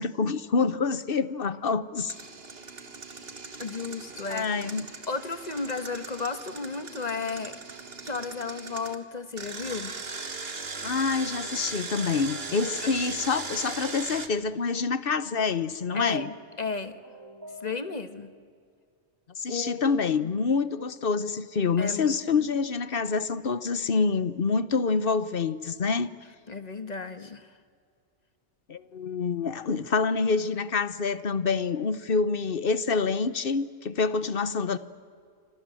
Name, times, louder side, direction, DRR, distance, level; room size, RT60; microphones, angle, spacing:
voice 1, 0.0-2.1 4.3-4.9 10.8-16.3 19.4-26.1 28.7-34.8, left 4 dB, 55° left, 14 dB, 1.2 m, -27 dB
Engine, 2.1-8.9 9.4-14.3, right 4 dB, 60° right, 2.0 m, -39 dB
voice 2, 3.6-4.5 5.1-7.6 8.0-10.0 12.8-12.9 15.9-17.0 17.6-18.3 19.5-20.2 21.8-22.5 26.5-27.5, left 4 dB, 35° left, 10 dB, 1.4 m, -34 dB
sound 1, 16.2-18.3, equal, 20° right, 3.3 m, -48 dB
28.5 x 26.5 x 7.7 m, 2.2 s
omnidirectional pair, 1.2 m